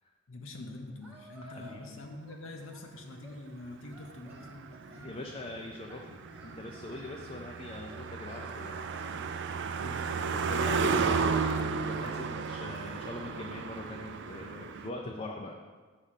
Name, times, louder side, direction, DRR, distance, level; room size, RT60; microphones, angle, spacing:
voice 1, 0.3-5.2 9.6-10.6, left 2 dB, 65° left, 3 dB, 0.7 m, -46 dB
Singing, 1.0-1.9 2.2-3.4 3.9-5.2 5.9-7.2 7.9-9.1 9.9-11.2 12.0-13.3, equal, 5° right, 1.1 m, -54 dB
voice 2, 1.4-2.0 5.0-6.0 6.4-8.8 9.9-10.0 10.3-15.7, left 2 dB, 30° left, 1 dB, 0.5 m, -42 dB
Car passing by, 3.7-14.9, right 5 dB, 60° right, 0.4 m, -33 dB
6.6 x 4.8 x 5.7 m, 1.4 s
head